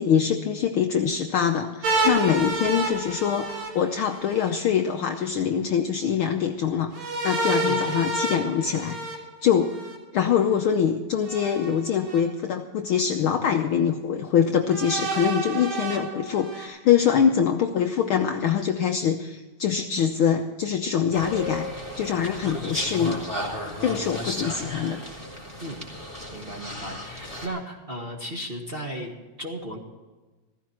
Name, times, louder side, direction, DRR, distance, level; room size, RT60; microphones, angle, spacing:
voice 1, 0.0-9.0 9.4-9.8 10.1-21.7 22.0-23.2 23.8-25.0, left 8 dB, 90° left, 5 dB, 1.1 m, -24 dB
sound 1, 1.8-4.5 6.9-10.0 11.2-12.2 12.9-13.0 14.7-16.7, right 2 dB, 70° right, 3.5 m, -29 dB
sound 2, 21.1-27.5, left 1 dB, 5° right, 3.3 m, -34 dB
voice 2, 22.4-22.7 25.6-25.8 26.3-29.1 29.4-29.8, right 1 dB, 25° right, 1 dB, 1.5 m, -35 dB
15.5 x 15.0 x 4.3 m, 1.3 s
omnidirectional pair, 3.3 m